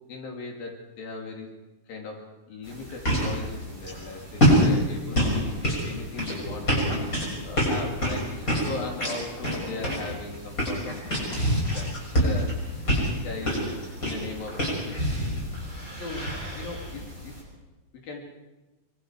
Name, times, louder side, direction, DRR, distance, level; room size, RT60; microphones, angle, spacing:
voice 1, 0.1-1.5 1.9-15.4 15.7-16.2 16.5-17.4 18.0-18.2, left 3 dB, 80° left, 1 dB, 4.5 m, -39 dB
sound 1, 2.6-17.4, equal, 20° left, 7.2 m, -27 dB
25.0 x 23.5 x 4.8 m, 1.1 s
omnidirectional pair, 4.1 m